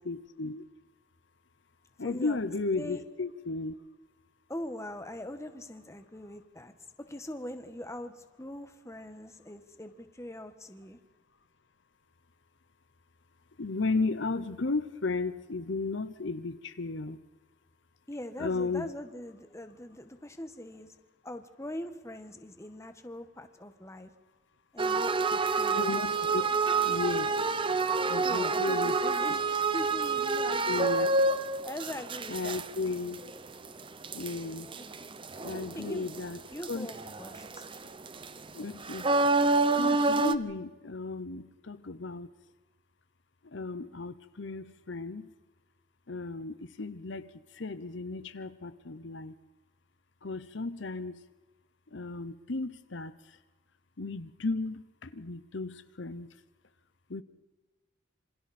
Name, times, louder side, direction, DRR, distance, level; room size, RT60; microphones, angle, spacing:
voice 1, 0.1-0.6 2.0-3.8 13.6-17.2 18.4-18.9 25.7-26.4 26.8-27.3 28.1-29.0 30.7-31.1 32.3-33.2 34.1-34.7 35.4-36.4 36.7-36.9 38.5-39.1 39.7-42.3 43.5-45.3 46.1-49.3 50.2-51.2 51.9-53.1 54.0-56.3 57.1-57.2, left 3 dB, 65° left, 12 dB, 0.9 m, -34 dB
voice 2, 2.0-2.4 2.7-3.0 4.5-6.7 7.0-11.0 18.1-20.9 21.2-24.1 24.7-26.0 28.2-31.1 31.6-32.6 34.8-35.1 35.7-36.1 36.5-37.7, left 1 dB, 15° left, 8 dB, 1.4 m, -42 dB
sound 1, 24.8-36.4 36.6-40.3, right 3 dB, 25° right, 0.8 m, -28 dB
27.0 x 26.5 x 4.3 m, 1.2 s
head